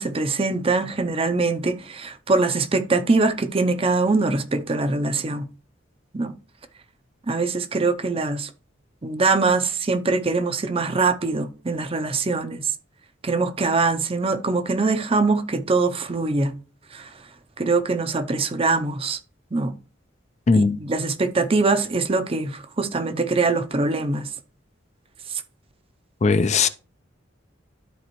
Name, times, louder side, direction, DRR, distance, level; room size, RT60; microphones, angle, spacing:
voice 1, 0.0-5.5 6.1-6.3 7.3-8.5 9.0-12.7 13.2-16.5 16.9-17.1 17.6-19.2 19.5-19.8 20.5-24.3 25.3-25.4, right 3 dB, 30° right, 0.6 m, -23 dB
voice 2, 20.5-20.8 26.2-26.7, left 4 dB, 35° left, 0.4 m, -18 dB
12.5 x 4.2 x 3.0 m
head